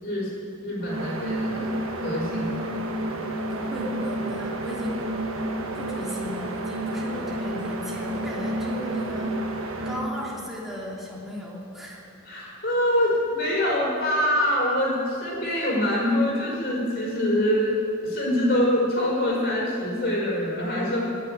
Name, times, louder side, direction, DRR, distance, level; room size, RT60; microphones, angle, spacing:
voice 1, 0.6-2.8 9.6-9.8 12.2-21.0, left 1 dB, 45° left, -6 dB, 4.5 m, -25 dB
sound 1, 0.8-10.1, right 1 dB, 70° right, 1.4 m, -30 dB
voice 2, 3.5-5.1 5.7-9.3 9.8-12.0, equal, ahead, -5 dB, 2.7 m, -36 dB
17.0 x 6.7 x 9.8 m, 2.7 s
head